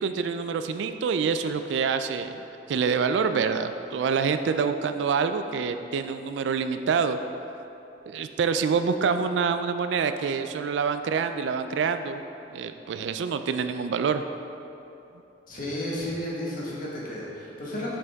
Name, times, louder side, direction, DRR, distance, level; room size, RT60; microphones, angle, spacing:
voice 1, 0.0-2.4 2.7-7.2 8.1-12.2 12.5-14.2, right 5 dB, 75° right, 9 dB, 0.3 m, -26 dB
voice 2, 15.5-18.0, left 1 dB, 50° left, -6 dB, 1.5 m, -32 dB
6.6 x 5.5 x 3.5 m, 2.9 s
head